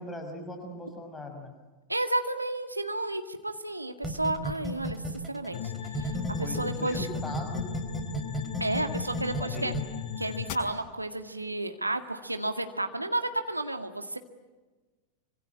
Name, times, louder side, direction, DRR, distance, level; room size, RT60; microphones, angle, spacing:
voice 1, 0.0-1.5 6.4-7.0 7.2-7.6 9.4-9.7, left 1 dB, 10° left, 2 dB, 5.9 m, -39 dB
voice 2, 1.9-7.1 8.6-9.7 10.2-14.2, right 2 dB, 85° right, 7 dB, 1.9 m, -32 dB
sound 1, 4.0-6.6 6.9-9.8, right 1 dB, 5° right, 4.1 m, -32 dB
sound 2, 5.5-10.5, left 9 dB, 40° left, 5.5 m, -37 dB
26.0 x 26.0 x 8.8 m, 1.2 s
figure-of-eight pair, 90°, 0 cm